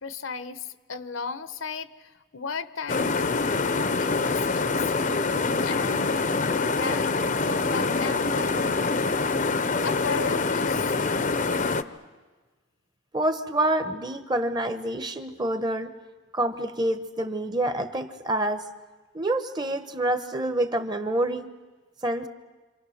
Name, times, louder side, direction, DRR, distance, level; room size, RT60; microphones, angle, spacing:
voice 1, 0.0-3.2 4.0-5.2 5.6-6.2 6.5-7.1 7.4-8.8 9.8-11.0, left 5 dB, 75° left, 12 dB, 0.9 m, -35 dB
sound 1, 2.9-11.8, left 3 dB, 40° left, 0.7 m, -25 dB
voice 2, 13.1-15.9 16.3-18.7 19.1-21.5 22.0-22.3, right 1 dB, 20° right, 9 dB, 1.0 m, -27 dB
27.0 x 26.5 x 6.5 m, 1.3 s
head